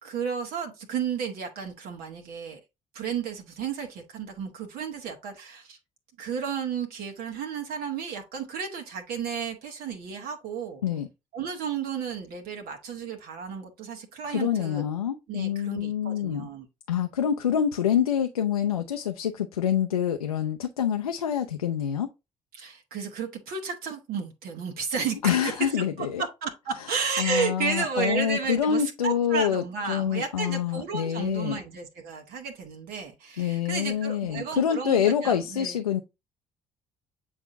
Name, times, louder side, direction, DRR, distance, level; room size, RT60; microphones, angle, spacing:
voice 1, 0.0-2.6 2.9-5.8 6.2-10.8 11.3-14.8 15.3-16.7 22.5-25.5 26.0-35.7, right 6 dB, 55° right, 1.3 m, -32 dB
voice 2, 14.3-16.5 16.9-22.1 25.2-26.2 26.8-26.9 27.2-31.6 33.4-36.0, left 9 dB, 80° left, 0.5 m, -26 dB
8.5 x 4.4 x 2.6 m
figure-of-eight pair, 50°, 18 cm